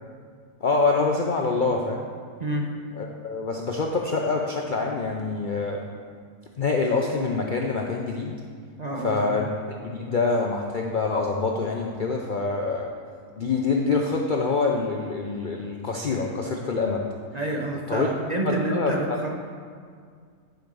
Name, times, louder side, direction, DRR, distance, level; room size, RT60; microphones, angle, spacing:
voice 1, 0.6-2.1 3.0-5.8 6.6-8.4 9.0-9.5 9.8-12.9 13.4-17.0 17.9-18.1 18.5-19.2, left 4 dB, 90° left, 0 dB, 0.4 m, -25 dB
voice 2, 8.8-9.4 17.3-19.3, right 2 dB, 45° right, -1 dB, 0.5 m, -28 dB
10.5 x 5.1 x 5.4 m, 2.1 s
omnidirectional pair, 1.7 m